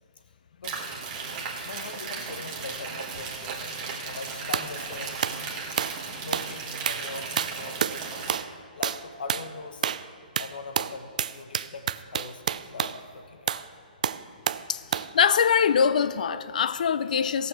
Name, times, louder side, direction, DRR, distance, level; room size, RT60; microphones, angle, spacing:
sound 1, 0.6-8.3, right 4 dB, 25° right, 1.5 m, -36 dB
voice 1, 1.6-3.8 4.0-5.4 6.1-8.1 8.7-9.9 10.3-13.5, left 4 dB, 70° left, 1.1 m, -41 dB
sound 2, 4.5-4.7 5.2-5.4 5.8-6.0 6.3-6.5 6.9-7.1 7.4-8.0 8.3-8.5 8.8-9.0 9.3-9.5 9.8-10.1 10.4-13.0 13.5-13.7 14.0-14.7 14.9-15.1, right 8 dB, 50° right, 0.4 m, -29 dB
voice 2, 14.7-17.5, left 7 dB, 55° left, 0.5 m, -23 dB
16.5 x 6.8 x 5.9 m
hypercardioid pair, 165°, 5 cm